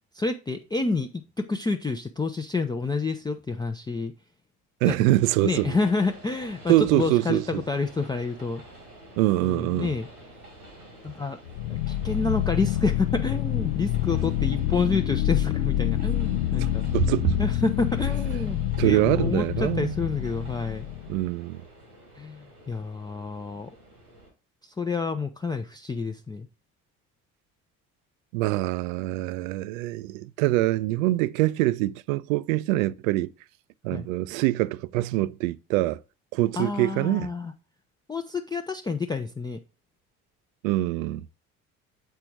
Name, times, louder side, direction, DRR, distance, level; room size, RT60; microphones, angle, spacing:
voice 1, 0.1-1.1 1.4-4.1 4.8-4.9 5.4-8.6 9.4-10.1 11.0-11.4 11.7-16.9 17.4-20.9 22.2-23.7 24.6-26.5 33.9-34.1 36.6-37.5 38.1-39.6, left 3 dB, 10° left, 0.5 m, -29 dB
voice 2, 4.8-5.8 6.7-7.6 9.2-9.9 16.9-17.4 18.8-19.9 21.1-21.6 28.3-33.3 33.8-36.0 36.3-37.3 40.6-41.2, right 17 dB, 65° right, 0.5 m, -24 dB
Train, 5.2-24.3, right 1 dB, 90° right, 1.6 m, -49 dB
sound 1, 11.5-21.3, left 12 dB, 75° left, 0.5 m, -27 dB
7.7 x 4.6 x 4.5 m
figure-of-eight pair, 55°, 44 cm